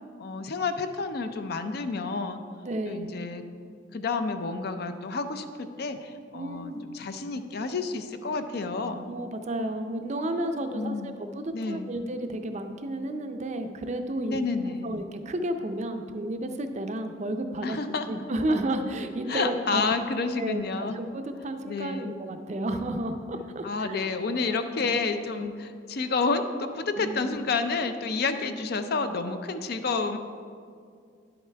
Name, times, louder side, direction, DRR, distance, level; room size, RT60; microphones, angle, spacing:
voice 1, 0.2-2.4 2.9-3.4 3.9-9.1 10.7-11.2 11.5-11.9 14.2-14.9 17.6-18.1 19.3-21.0 21.7-22.1 23.6-30.2, left 4 dB, 55° left, 9 dB, 0.5 m, -30 dB
voice 2, 2.6-3.2 6.3-6.8 9.1-17.8 18.1-19.8 20.4-24.1 24.5-25.0 25.3-25.5 27.0-27.4, right 1 dB, 35° right, 7 dB, 0.5 m, -32 dB
10.5 x 7.8 x 3.4 m, 2.2 s
head